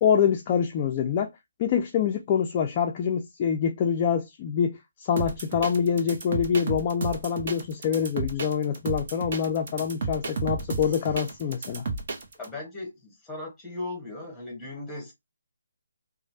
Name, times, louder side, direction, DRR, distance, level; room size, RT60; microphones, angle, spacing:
voice 1, 0.0-1.3 1.6-11.8, left 7 dB, 30° left, 0.3 m, -25 dB
sound 1, 5.2-12.5, right 3 dB, 45° right, 0.7 m, -32 dB
voice 2, 12.4-15.1, left 2 dB, 5° left, 1.1 m, -37 dB
3.0 x 2.0 x 2.6 m
figure-of-eight pair, 145°, 0 cm